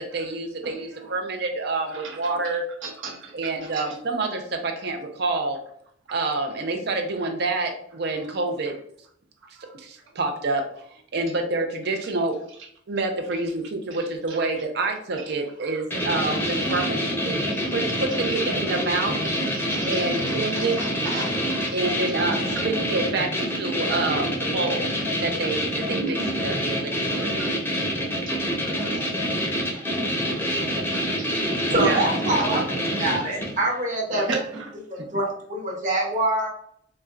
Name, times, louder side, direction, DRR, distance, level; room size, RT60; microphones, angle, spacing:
voice 1, 0.0-2.6 3.3-5.6 6.1-8.7 9.8-10.6 11.1-12.3 12.9-17.4 17.7-19.2 19.8-20.8 21.7-24.9 25.2-27.3, right 3 dB, 60° right, 5 dB, 0.6 m, -27 dB
voice 2, 0.6-1.2 1.9-4.0 9.6-9.7 13.9-14.4 15.3-15.4 15.6-16.9 17.4-17.7 18.1-18.4 19.3-21.8 22.1-22.7 23.4-23.5 26.0-26.3 27.4-27.8 28.1-29.8 30.1-32.9 34.1-35.2, right 3 dB, 85° right, -2 dB, 1.0 m, -36 dB
sound 1, 15.9-33.6, equal, 10° left, 0.7 m, -26 dB
voice 3, 31.7-32.6 33.0-34.3 34.9-36.5, right 1 dB, 45° right, -1 dB, 1.0 m, -25 dB
4.2 x 2.2 x 2.4 m, 0.65 s
head